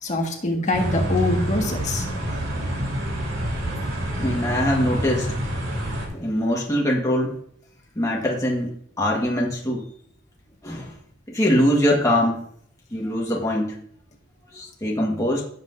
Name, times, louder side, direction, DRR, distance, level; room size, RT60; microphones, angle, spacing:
voice 1, 0.0-2.0, left 2 dB, 35° left, 1 dB, 1.7 m, -24 dB
sound 1, 0.7-6.1, equal, 70° right, 3.7 m, -27 dB
voice 2, 4.2-5.4 6.1-7.4 7.9-9.8 10.6-10.9 11.3-12.5 12.9-13.8 14.5-15.4, equal, 15° left, -2 dB, 1.5 m, -23 dB
16.5 x 7.6 x 2.6 m, 0.64 s
head